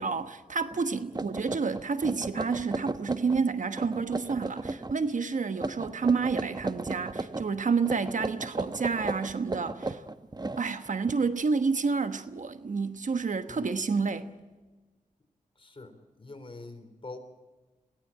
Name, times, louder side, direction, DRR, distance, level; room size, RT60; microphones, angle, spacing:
voice 1, 0.0-10.0 10.6-14.3, right 5 dB, 65° right, 1.2 m, -29 dB
sound 1, 0.7-0.8 1.1-3.4 3.7-5.0 5.5-7.5 7.8-11.1, right 2 dB, 30° right, 1.0 m, -35 dB
voice 2, 15.6-17.2, left 3 dB, 40° left, 3.9 m, -45 dB
21.5 x 18.0 x 8.6 m
cardioid pair, 60°, 14 cm